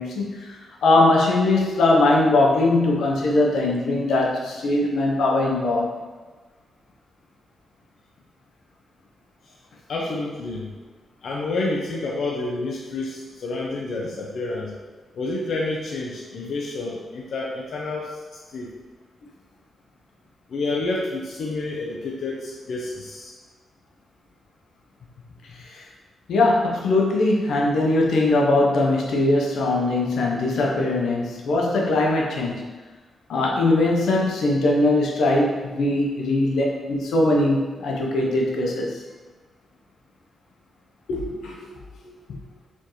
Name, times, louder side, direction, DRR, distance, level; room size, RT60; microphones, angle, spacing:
voice 1, 0.0-5.9 25.7-25.8 26.3-32.6 33.3-39.0 41.1-41.6, left 2 dB, 85° left, -2 dB, 0.8 m, -21 dB
voice 2, 9.9-10.7 11.2-14.7 15.1-18.2 18.5-18.7 20.5-23.3, left 2 dB, 55° left, -3 dB, 0.5 m, -29 dB
4.5 x 3.5 x 3.1 m, 1.3 s
wide cardioid pair, 180°, 0 cm